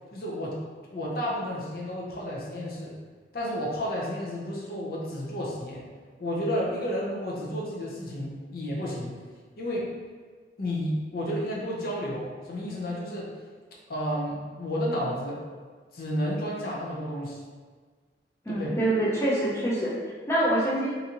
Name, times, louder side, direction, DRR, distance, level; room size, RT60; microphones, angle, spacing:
voice 1, 0.1-0.6 0.9-2.9 3.3-5.8 6.2-9.1 9.6-9.9 10.6-13.3 13.9-15.4 15.9-17.4 18.5-18.7, equal, 55° left, -4 dB, 0.7 m, -31 dB
voice 2, 18.5-20.9, right 1 dB, 15° left, -7 dB, 0.6 m, -26 dB
3.9 x 2.6 x 2.9 m, 1.5 s
head